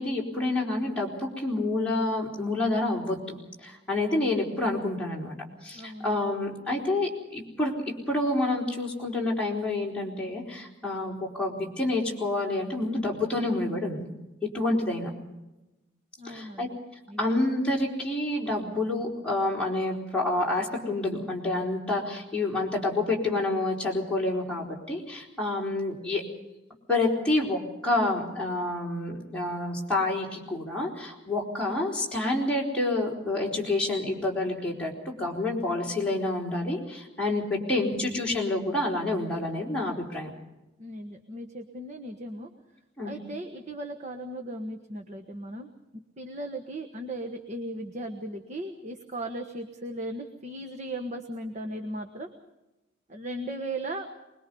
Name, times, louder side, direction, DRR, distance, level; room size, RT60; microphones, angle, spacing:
voice 1, 0.0-5.4 5.6-7.7 8.1-14.1 14.5-15.1 16.2-16.7 17.2-26.2 26.9-40.3 43.0-43.1, left 2 dB, 5° left, -4 dB, 4.3 m, -28 dB
voice 2, 5.7-6.1 16.2-16.8 17.1-17.3 40.8-42.5 43.0-45.7 46.2-52.3 53.1-54.1, right 1 dB, 35° right, 3 dB, 1.3 m, -37 dB
24.5 x 21.5 x 5.4 m, 0.99 s
head